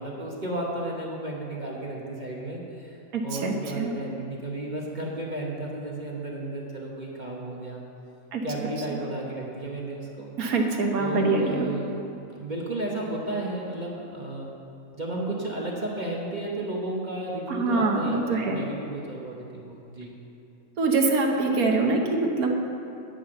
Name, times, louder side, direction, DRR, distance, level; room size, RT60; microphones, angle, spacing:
voice 1, 0.0-3.0 3.2-7.8 8.4-10.3 11.0-12.0 12.3-14.5 14.9-20.1, right 1 dB, 35° right, -3 dB, 1.1 m, -33 dB
voice 2, 3.1-3.9 8.3-8.4 10.4-11.7 17.5-18.6 20.8-22.5, right 3 dB, 75° right, 2 dB, 1.5 m, -24 dB
10.0 x 5.8 x 7.8 m, 2.8 s
omnidirectional pair, 1.6 m